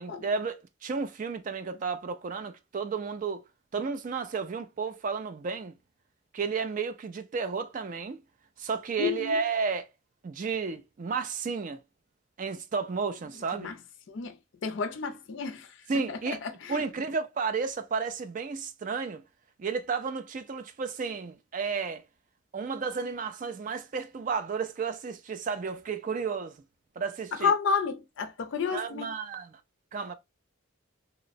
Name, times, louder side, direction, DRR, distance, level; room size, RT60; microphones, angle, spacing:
voice 1, 0.0-3.4 3.7-5.7 6.3-8.2 8.6-9.9 10.2-11.8 12.4-13.7 15.9-16.4 16.7-19.2 19.6-22.0 22.5-26.6 27.0-27.5 28.7-29.6 29.9-30.1, right 5 dB, 40° right, 0.3 m, -32 dB
voice 2, 9.0-9.4 13.6-13.7 14.1-14.3 14.6-15.7 16.1-16.9 27.4-29.1, left 5 dB, 60° left, 0.4 m, -30 dB
2.9 x 2.0 x 2.5 m
head